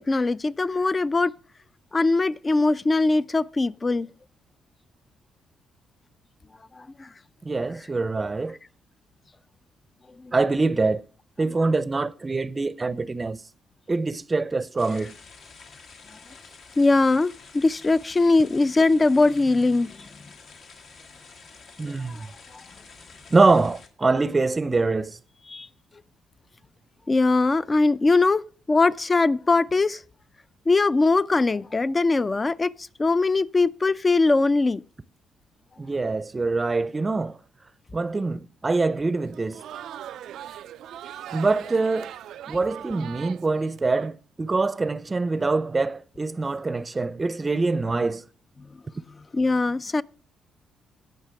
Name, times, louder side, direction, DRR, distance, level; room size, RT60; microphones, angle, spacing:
voice 1, 0.0-1.3 1.9-4.1 6.8-7.1 10.2-10.3 16.8-20.1 21.8-22.2 25.5-25.7 27.1-28.4 28.7-30.0 30.7-34.8 49.3-50.0, left 3 dB, 25° left, 0.4 m, -21 dB
voice 2, 7.4-8.6 10.3-11.0 11.4-13.4 13.9-15.2 21.8-22.3 23.3-25.2 35.8-37.4 37.9-39.6 41.3-42.1 42.5-48.2, right 3 dB, 25° right, 0.6 m, -24 dB
sound 1, 14.8-23.9, left 4 dB, 65° left, 1.7 m, -49 dB
Crowd, 39.2-44.1, right 11 dB, 75° right, 0.3 m, -40 dB
17.0 x 5.7 x 3.4 m
cardioid pair, 90°, 0 cm